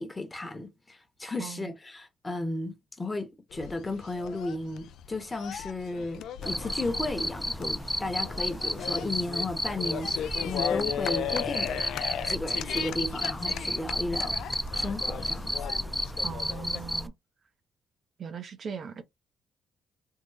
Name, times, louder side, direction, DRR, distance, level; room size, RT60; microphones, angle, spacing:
voice 1, 0.0-11.8 12.3-15.5, left 2 dB, 20° left, 0.9 m, -34 dB
voice 2, 1.4-1.7 16.2-17.1 18.2-19.0, right 6 dB, 55° right, 0.6 m, -39 dB
sound 1, 3.5-16.9, left 9 dB, 80° left, 0.3 m, -37 dB
Cricket, 6.4-17.1, left 1 dB, 5° left, 0.5 m, -32 dB
3.6 x 2.0 x 3.1 m
cardioid pair, 90°, 0 cm